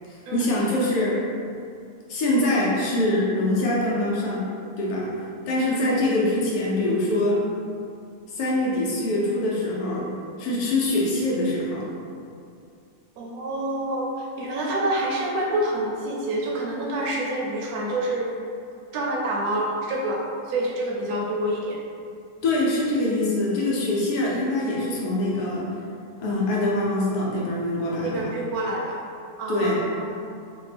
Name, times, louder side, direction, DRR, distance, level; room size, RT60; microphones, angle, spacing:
voice 1, 0.1-1.2 2.1-4.4 4.8-5.1 5.5-7.5 8.3-10.1 10.4-11.9 22.4-25.7 26.2-28.3 29.5-29.8, left 1 dB, 80° left, -5 dB, 1.2 m, -24 dB
voice 2, 5.6-6.0 13.2-18.3 18.9-20.2 20.5-21.8 28.0-29.0 29.4-30.3, right 1 dB, 75° right, -2 dB, 1.1 m, -27 dB
3.3 x 2.2 x 3.2 m, 2.4 s
omnidirectional pair, 1.6 m